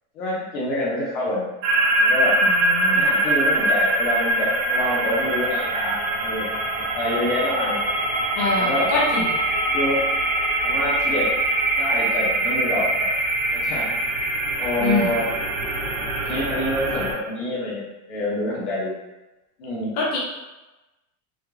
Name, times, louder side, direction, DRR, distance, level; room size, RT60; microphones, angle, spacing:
voice 1, 0.1-1.5 2.0-2.4 2.9-5.9 6.2-6.5 6.9-7.8 8.5-8.9 9.7-10.0 10.6-11.3 11.7-13.1 13.5-13.9 14.5-15.3 16.3-17.8 18.1-18.9 19.6-19.9, left 1 dB, 60° left, -7 dB, 1.1 m, -26 dB
sound 1, 1.6-17.1, right 2 dB, 55° right, 0.9 m, -23 dB
voice 2, 2.4-3.1 8.4-9.3 14.8-15.1 20.0-20.2, left 2 dB, 30° left, -5 dB, 0.4 m, -24 dB
3.5 x 3.2 x 2.3 m, 1.0 s
supercardioid pair, 180°, 45 cm